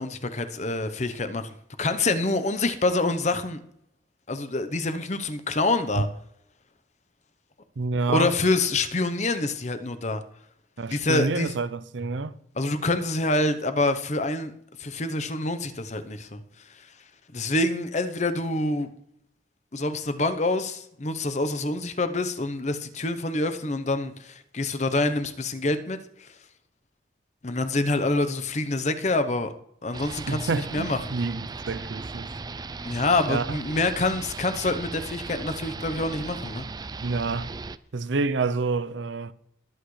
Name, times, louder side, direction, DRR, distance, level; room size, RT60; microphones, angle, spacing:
voice 1, 0.0-3.6 4.3-6.1 8.1-10.2 10.9-11.5 12.5-14.5 14.8-16.4 17.3-18.9 19.7-26.3 27.4-29.5 29.8-31.0 32.8-36.7, left 2 dB, 40° left, 0.9 m, -26 dB
voice 2, 7.8-8.3 10.8-12.3 30.3-32.3 33.3-33.6 37.0-37.5 37.9-39.3, right 4 dB, 85° right, 0.6 m, -28 dB
sound 1, 29.9-37.8, right 4 dB, 20° right, 0.4 m, -37 dB
21.0 x 8.4 x 3.3 m
head